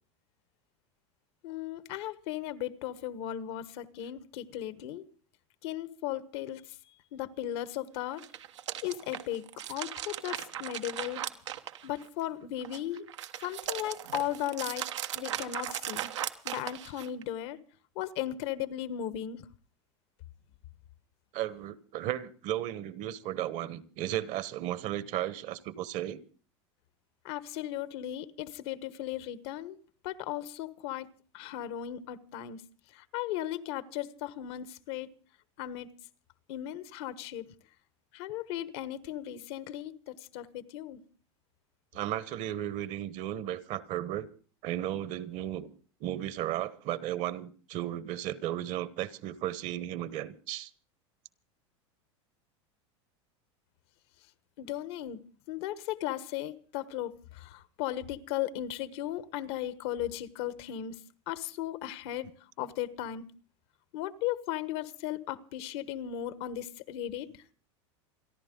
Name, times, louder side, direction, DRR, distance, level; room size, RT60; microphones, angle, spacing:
voice 1, 1.4-5.0 5.6-6.8 7.1-8.2 8.8-11.2 11.8-13.1 13.4-14.9 15.1-16.1 16.4-17.6 17.9-19.5 27.2-29.8 30.0-31.1 31.3-32.6 32.9-35.1 35.6-35.9 36.5-37.4 38.1-41.0 54.6-55.2 55.5-60.9 61.3-62.3 62.6-63.3 63.9-67.4, left 12 dB, 65° left, 1.3 m, -36 dB
sound 1, 8.1-12.2 12.6-17.2, right 11 dB, 90° right, 1.2 m, -38 dB
voice 2, 21.3-26.2 41.9-44.3 44.6-45.7 46.0-50.7, right 12 dB, 55° right, 1.2 m, -34 dB
28.5 x 11.0 x 3.9 m
supercardioid pair, 110°, 15 cm